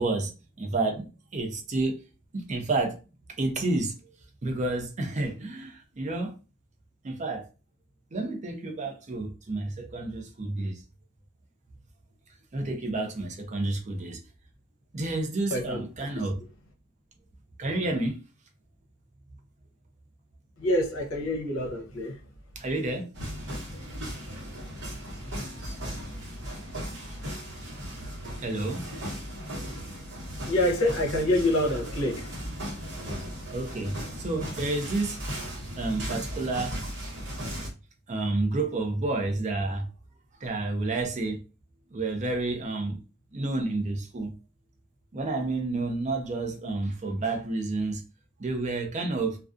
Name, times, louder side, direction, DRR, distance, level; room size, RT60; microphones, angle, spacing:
voice 1, 0.0-2.0 2.3-3.0 3.4-4.1 4.4-6.3 7.0-7.5 8.1-10.8 12.5-14.2 14.9-16.4 17.6-18.2 22.6-23.1 28.4-28.8 33.5-35.2 35.8-36.8 38.1-39.9 40.4-41.4 41.9-43.0 43.3-44.3 45.1-48.0 48.4-49.4, right 2 dB, 35° right, 0.5 m, -30 dB
voice 2, 15.5-16.1 20.6-22.2 30.5-32.5, left 1 dB, 75° left, 0.7 m, -27 dB
sound 1, 23.1-37.7, equal, 60° right, 1.0 m, -37 dB
2.3 x 2.3 x 2.4 m
head